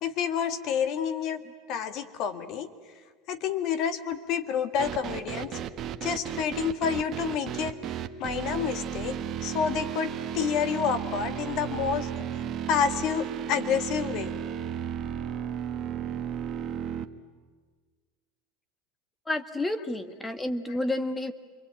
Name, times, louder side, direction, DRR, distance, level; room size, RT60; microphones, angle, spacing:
voice 1, 0.0-1.4 1.7-2.7 3.3-5.6 6.0-7.8 8.2-12.1 12.7-14.4, left 7 dB, 55° left, 9 dB, 2.0 m, -29 dB
sound 1, 4.8-17.0, right 9 dB, 45° right, 1.3 m, -34 dB
voice 2, 19.3-21.3, left 1 dB, 15° left, 9 dB, 1.7 m, -30 dB
28.0 x 22.5 x 9.1 m, 1.5 s
supercardioid pair, 105°, 0 cm